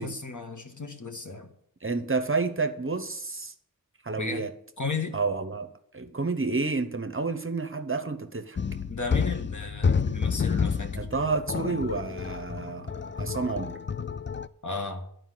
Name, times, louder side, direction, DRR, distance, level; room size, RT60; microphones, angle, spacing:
voice 1, 0.0-1.5 4.2-4.5 4.8-5.2 8.9-10.9 14.6-15.1, left 4 dB, 55° left, 1.6 m, -34 dB
voice 2, 1.8-3.5 4.0-4.5 5.1-8.6 11.0-13.8, right 4 dB, 35° right, 0.9 m, -30 dB
sound 1, 8.6-14.5, left 6 dB, 35° left, 0.4 m, -29 dB
11.5 x 4.9 x 7.7 m
wide cardioid pair, 40°, 36 cm